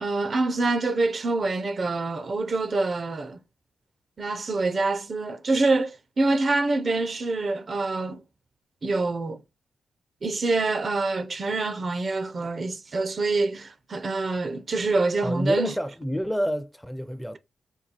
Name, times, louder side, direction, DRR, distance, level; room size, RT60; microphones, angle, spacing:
voice 1, 0.0-3.4 4.2-8.2 8.8-9.4 10.2-15.7, right 3 dB, 50° right, 0.4 m, -26 dB
voice 2, 15.2-17.4, equal, 5° left, 0.4 m, -28 dB
5.2 x 2.3 x 2.8 m
cardioid pair, 70°, 0 cm